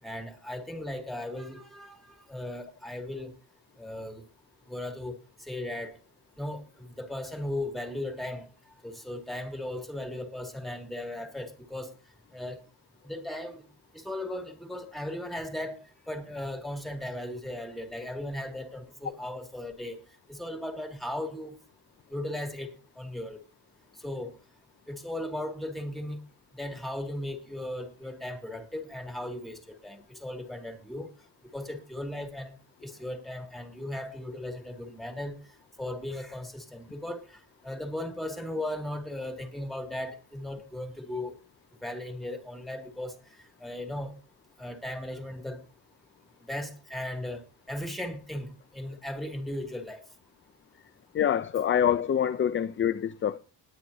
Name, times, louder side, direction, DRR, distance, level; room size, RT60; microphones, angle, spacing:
voice 1, 0.0-3.3 3.8-4.2 4.7-6.0 6.4-8.5 8.8-11.9 12.3-12.6 13.0-13.6 13.9-20.0 20.3-21.5 22.1-23.4 24.0-24.3 24.9-26.2 26.6-31.1 31.5-32.5 32.8-35.4 35.8-41.3 41.8-43.2 43.6-44.1 44.6-45.6 46.4-50.0, left 1 dB, ahead, 2.3 m, -37 dB
voice 2, 51.1-53.4, left 9 dB, 30° left, 0.5 m, -26 dB
20.0 x 9.4 x 2.7 m
cardioid pair, 115°, 40 cm